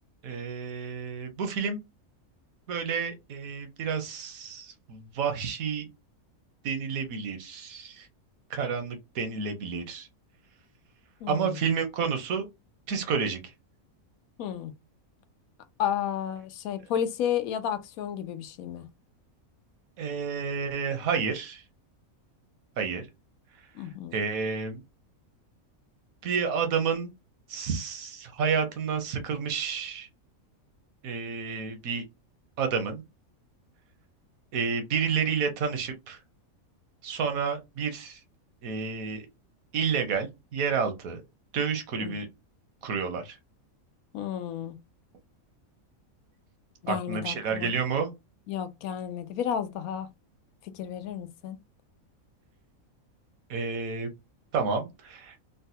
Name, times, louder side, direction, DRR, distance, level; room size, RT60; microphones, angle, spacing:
voice 1, 0.2-1.8 2.7-5.9 6.6-8.1 8.5-10.1 11.3-12.5 12.9-13.4 20.0-21.6 22.8-23.1 24.1-24.8 26.2-27.1 27.5-30.1 31.0-32.0 32.6-33.0 34.5-36.2 37.0-38.2 38.6-39.3 39.7-41.2 41.5-42.3 42.8-43.3 46.9-48.1 53.5-54.1 54.5-55.3, right 6 dB, 75° right, 1.2 m, -30 dB
voice 2, 11.2-11.6 14.4-14.7 15.8-18.9 23.8-24.2 42.0-42.2 44.1-44.7 46.8-47.7 48.5-50.1 50.7-51.6, left 9 dB, 85° left, 1.0 m, -32 dB
3.9 x 2.2 x 2.7 m
omnidirectional pair, 1.5 m